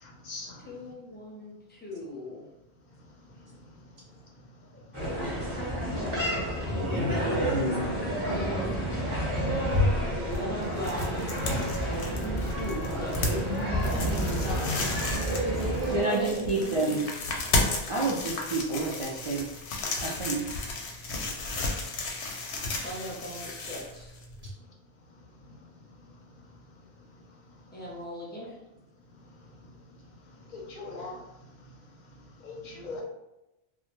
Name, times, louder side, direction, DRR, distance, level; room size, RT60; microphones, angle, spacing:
voice 1, 0.0-0.7 21.6-21.7 25.5-25.6 29.6-29.7 30.5-31.2 32.4-33.0, left 3 dB, 55° left, -2 dB, 0.6 m, -41 dB
voice 2, 0.6-2.5 4.7-4.8 6.6-7.6 10.2-11.3 12.1-14.3 15.9-17.0 17.5-17.8 22.8-24.1 27.7-28.7, left 1 dB, 15° left, -4 dB, 0.4 m, -39 dB
sound 1, 4.9-16.0, right 1 dB, 15° right, 0.8 m, -30 dB
voice 3, 6.7-9.2 13.3-16.7, right 1 dB, 85° right, -4 dB, 0.9 m, -34 dB
sound 2, 9.4-24.5, left 2 dB, 85° left, 0.8 m, -33 dB
voice 4, 15.9-17.0 17.9-19.5 20.0-20.4, right 3 dB, 55° right, -5 dB, 0.4 m, -29 dB
2.3 x 2.1 x 2.9 m, 0.92 s
omnidirectional pair, 1.1 m